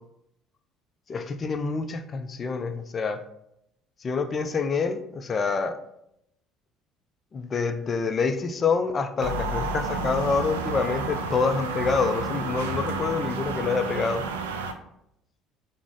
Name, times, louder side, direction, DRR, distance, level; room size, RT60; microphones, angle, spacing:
voice 1, 1.1-3.2 4.0-5.8 7.3-14.2, left 4 dB, 35° left, 9 dB, 0.4 m, -27 dB
sound 1, 9.2-14.7, right 3 dB, 80° right, 0.3 m, -30 dB
4.7 x 2.1 x 3.8 m, 0.78 s
hypercardioid pair, 60°, 0 cm